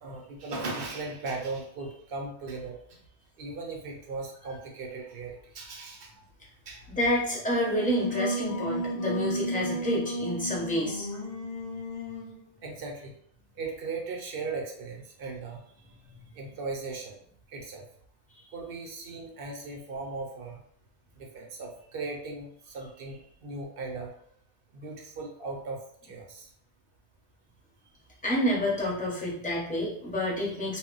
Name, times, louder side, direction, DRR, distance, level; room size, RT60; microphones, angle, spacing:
voice 1, 0.0-3.0 3.4-6.2 6.7-6.8 12.6-13.1 13.6-15.6 16.4-17.2 17.5-17.8 18.5-20.6 21.2-24.1 24.7-26.5, right 3 dB, 65° right, 1 dB, 0.7 m, -38 dB
voice 2, 7.0-11.1 28.2-30.8, left 1 dB, 10° left, -5 dB, 0.7 m, -29 dB
Singing, 7.5-12.4, equal, 80° left, 0.9 m, -33 dB
2.1 x 2.0 x 3.7 m, 0.64 s
omnidirectional pair, 1.1 m